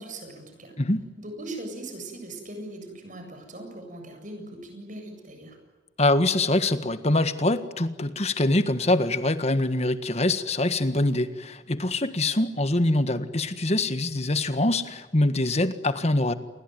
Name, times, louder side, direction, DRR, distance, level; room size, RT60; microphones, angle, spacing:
voice 1, 0.0-0.7 1.2-5.6, right 1 dB, 45° right, 5 dB, 7.9 m, -40 dB
voice 2, 6.0-16.3, left 2 dB, 35° left, 11 dB, 1.7 m, -24 dB
29.5 x 21.5 x 9.4 m, 1.2 s
head